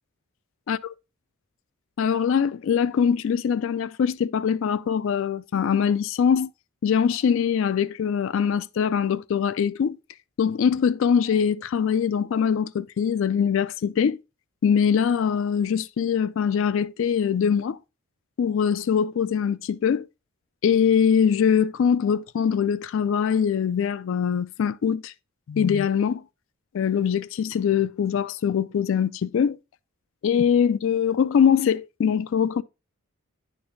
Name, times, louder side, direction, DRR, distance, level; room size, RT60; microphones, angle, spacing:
voice 1, 2.0-6.5 6.8-10.0 10.4-14.2 14.6-17.8 18.4-20.1 20.6-25.1 25.5-26.2 26.7-29.6 30.2-32.6, left 7 dB, 60° left, 0.3 m, -22 dB
9.5 x 5.2 x 2.6 m
head